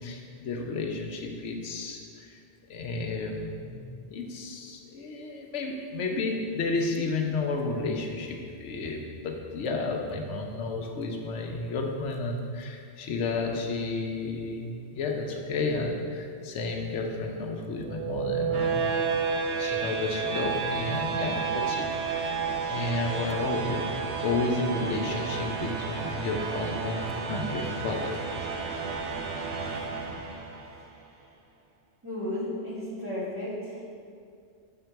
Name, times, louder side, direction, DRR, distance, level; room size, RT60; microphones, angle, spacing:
voice 1, 0.0-2.4 2.7-19.1 19.6-22.3 22.7-28.2, left 3 dB, 90° left, 2 dB, 1.0 m, -32 dB
sound 1, 17.8-30.8, right 5 dB, 80° right, 1.0 m, -31 dB
voice 2, 29.5-30.2 32.0-34.0, left 1 dB, 10° right, -7 dB, 1.7 m, -35 dB
7.8 x 3.7 x 4.5 m, 2.3 s
omnidirectional pair, 1.2 m